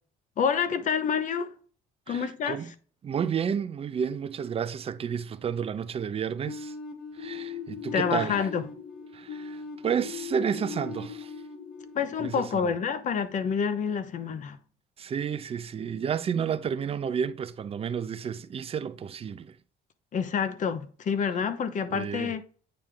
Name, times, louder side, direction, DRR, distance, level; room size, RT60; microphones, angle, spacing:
voice 1, 0.4-1.5 2.1-2.6 7.9-8.6 11.9-14.6 20.1-22.4, left 6 dB, 50° left, 0.9 m, -28 dB
voice 2, 2.1-2.7 3.0-6.7 7.1-8.4 9.1-11.3 12.2-12.7 15.0-19.6 21.9-22.3, right 7 dB, 35° right, 0.6 m, -31 dB
sound 1, 6.5-13.2, left 5 dB, 85° left, 1.5 m, -40 dB
8.8 x 3.3 x 3.8 m
cardioid pair, 110°, 17 cm